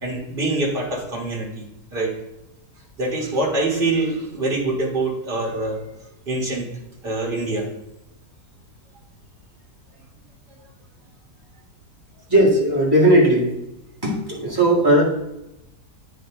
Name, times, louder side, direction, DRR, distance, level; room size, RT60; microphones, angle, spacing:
voice 1, 0.0-1.6 1.9-2.1 3.0-5.8 6.3-6.7 7.0-7.7, right 2 dB, 35° right, -2 dB, 1.8 m, -24 dB
voice 2, 12.3-13.5 14.0-15.0, right 1 dB, 15° right, -6 dB, 1.8 m, -16 dB
9.2 x 4.2 x 3.7 m, 0.90 s
omnidirectional pair, 1.8 m